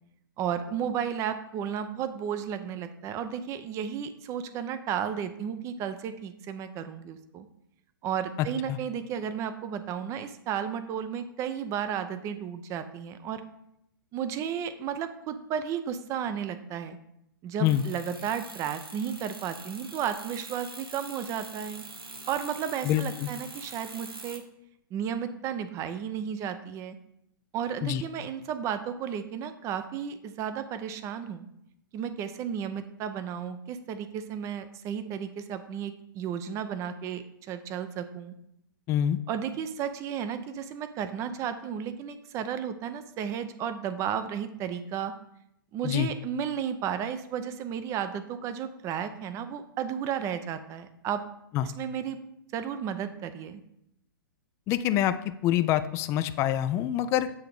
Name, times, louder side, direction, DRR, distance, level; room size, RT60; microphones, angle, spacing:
voice 1, 0.4-7.5 8.0-13.4 14.1-17.0 17.4-21.8 22.3-24.4 24.9-27.0 27.5-31.5 31.9-38.3 39.3-45.1 45.7-51.2 51.6-52.2 52.5-53.6, right 8 dB, 25° right, 10 dB, 0.6 m, -33 dB
voice 2, 8.4-8.8 17.6-17.8 22.8-23.3 27.8-28.0 38.9-39.2 45.8-46.1 51.5-51.7 54.7-55.2 55.4-57.3, left 11 dB, 25° left, 12 dB, 0.3 m, -26 dB
sound 1, 17.6-24.4, right 3 dB, 90° right, 1.1 m, -44 dB
7.2 x 3.7 x 4.7 m, 0.78 s
figure-of-eight pair, 115°, 12 cm